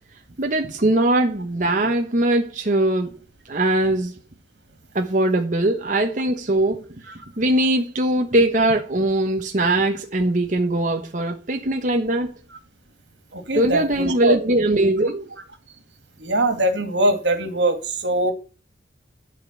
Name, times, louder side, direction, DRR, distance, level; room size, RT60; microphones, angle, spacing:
voice 1, 0.4-3.1 3.5-4.1 4.9-6.9 7.4-12.3 13.5-15.3, right 1 dB, 45° right, 1.1 m, -21 dB
voice 2, 13.3-14.4 16.2-18.3, right 1 dB, 75° right, 2.4 m, -22 dB
12.0 x 5.2 x 7.5 m
head